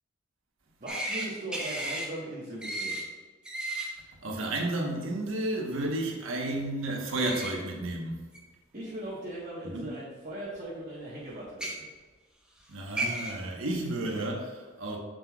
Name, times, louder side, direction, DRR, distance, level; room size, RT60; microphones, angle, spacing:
voice 1, 0.8-3.0 8.7-11.9, right 1 dB, 40° right, 1.3 m, -39 dB
sound 1, 0.9-1.3 1.5-2.1 2.6-3.0 3.4-3.9 7.2-7.5 8.3-8.4 9.7-9.8 11.5-11.7 12.6-12.7 13.0-13.3, right 1 dB, 5° right, 1.0 m, -33 dB
voice 2, 4.2-8.2 9.6-9.9 12.7-15.0, right 1 dB, 85° right, 1.2 m, -32 dB
7.6 x 6.6 x 2.4 m
head